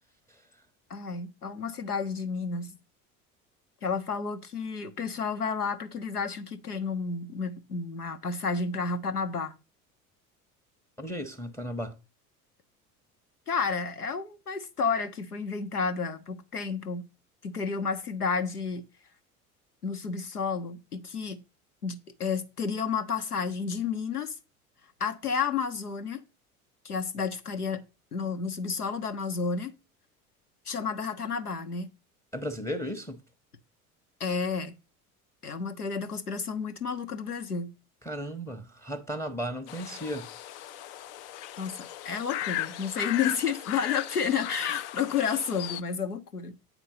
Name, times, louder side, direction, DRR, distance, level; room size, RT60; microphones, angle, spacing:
voice 1, 0.9-2.8 3.8-9.5 13.5-17.1 17.4-18.8 19.8-21.4 21.8-24.3 25.0-26.2 26.8-27.8 28.1-29.7 30.7-31.9 34.2-34.8 35.4-37.7 41.6-46.6, left 5 dB, 85° left, 0.9 m, -31 dB
voice 2, 11.0-12.0 32.3-33.2 38.0-40.3, equal, 5° left, 0.8 m, -35 dB
sound 1, 39.7-45.8, left 12 dB, 50° left, 0.6 m, -36 dB
8.4 x 4.5 x 5.6 m
figure-of-eight pair, 65°, 44 cm